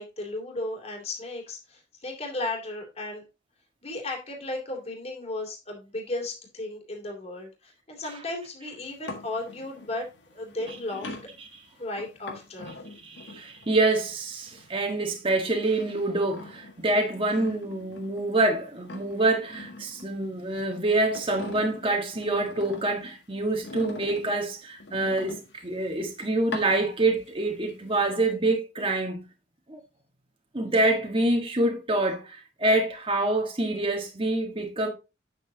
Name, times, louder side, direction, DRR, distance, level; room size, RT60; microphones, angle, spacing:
voice 1, 0.0-3.2 3.8-11.2 11.8-12.8, left 2 dB, 35° left, 2.8 m, -35 dB
sound 1, 8.8-15.3 15.6-18.5 18.8-20.6 21.0-23.1 23.6-25.8 26.4-27.3 27.7-28.3, left 2 dB, 65° left, 1.7 m, -43 dB
voice 2, 13.0-29.2 29.7-29.8 30.5-34.9, right 2 dB, 30° right, 1.6 m, -26 dB
8.9 x 7.3 x 2.8 m
head